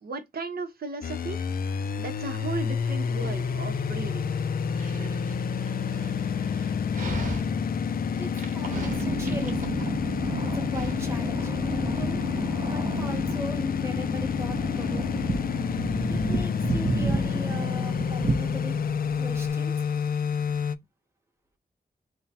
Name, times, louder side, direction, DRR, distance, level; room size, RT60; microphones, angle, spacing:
voice 1, 0.0-1.4 2.0-4.5, right 4 dB, 75° right, 1.0 m, -35 dB
sound 1, 1.0-20.8, left 7 dB, 65° left, 0.4 m, -29 dB
Dog, 1.4-20.6, right 2 dB, 55° right, 1.3 m, -43 dB
voice 2, 8.2-9.9 10.4-12.2 12.7-15.4 16.1-18.8 19.2-19.7, equal, 15° right, 1.3 m, -39 dB
sound 2, 8.5-19.5, right 4 dB, 35° right, 0.7 m, -32 dB
3.7 x 2.2 x 4.1 m
wide cardioid pair, 110°, 16 cm